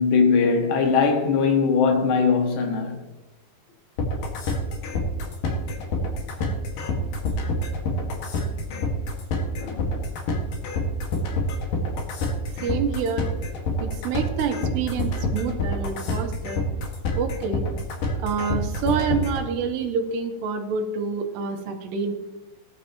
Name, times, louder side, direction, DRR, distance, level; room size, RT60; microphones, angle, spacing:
voice 1, 0.0-3.0 9.6-10.0, left 5 dB, 75° left, 3.8 m, -20 dB
sound 1, 4.0-19.4, left 3 dB, 60° left, 3.1 m, -27 dB
voice 2, 12.6-13.3 13.8-16.6 17.1-17.6 18.2-22.1, right 5 dB, 75° right, 3.1 m, -27 dB
18.5 x 12.5 x 3.0 m
omnidirectional pair, 5.1 m